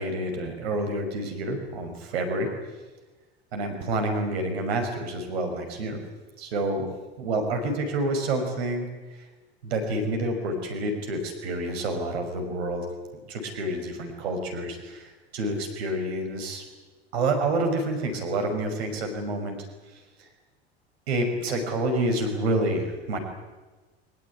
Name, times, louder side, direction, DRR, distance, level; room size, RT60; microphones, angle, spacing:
voice 1, 0.0-2.5 3.5-6.0 6.4-6.9 7.2-8.8 9.6-12.9 13.3-16.6 17.1-19.6 21.1-23.2, right 1 dB, 75° right, 5 dB, 5.9 m, -28 dB
23.5 x 21.5 x 9.8 m, 1.2 s
hypercardioid pair, 75°, 32 cm